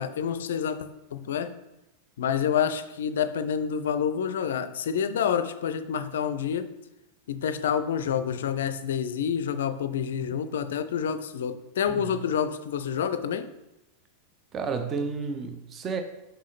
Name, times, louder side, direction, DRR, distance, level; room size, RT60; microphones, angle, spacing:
voice 1, 0.0-1.5 2.2-6.7 7.3-13.5, left 8 dB, 60° left, 0.4 m, -28 dB
voice 2, 14.5-16.0, right 5 dB, 25° right, 0.6 m, -31 dB
5.6 x 5.4 x 3.2 m
figure-of-eight pair, 90°, 0 cm